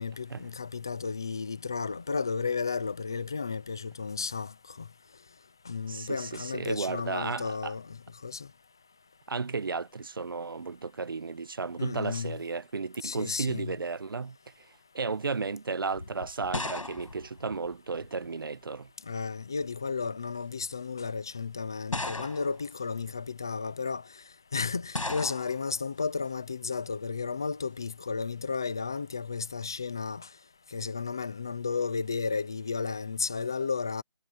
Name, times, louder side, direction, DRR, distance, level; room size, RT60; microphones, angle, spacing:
voice 1, 0.0-4.9 5.7-8.5 11.8-12.4 13.0-13.7 19.1-24.0 24.5-30.3 30.7-34.0, left 5 dB, 5° left, 0.5 m, -33 dB
voice 2, 5.9-7.7 9.3-14.4 14.9-18.9, right 4 dB, 40° right, 1.3 m, -34 dB
sound 1, 15.9-18.3 19.3-19.8 20.6-20.7 21.9-22.7 24.9-25.7, left 2 dB, 85° left, 6.6 m, -36 dB
figure-of-eight pair, 170°, 17 cm